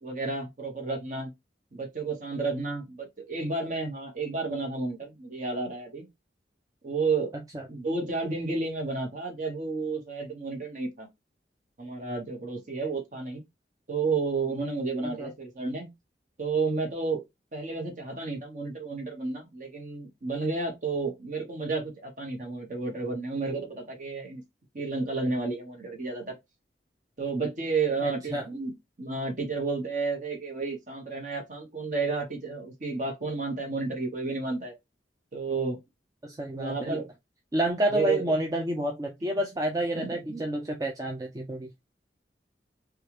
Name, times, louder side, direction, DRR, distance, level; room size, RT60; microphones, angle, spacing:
voice 1, 0.0-1.3 1.7-6.1 6.8-7.3 7.7-11.1 11.8-13.4 13.9-15.9 16.4-17.2 17.5-24.4 24.7-26.4 27.2-34.7 35.3-35.8 36.5-37.1 37.9-38.2 39.9-40.5, right 4 dB, 45° right, 1.1 m, -31 dB
voice 2, 28.0-28.5 36.2-37.0 37.5-41.7, right 1 dB, 20° right, 0.4 m, -29 dB
3.3 x 2.3 x 2.8 m
head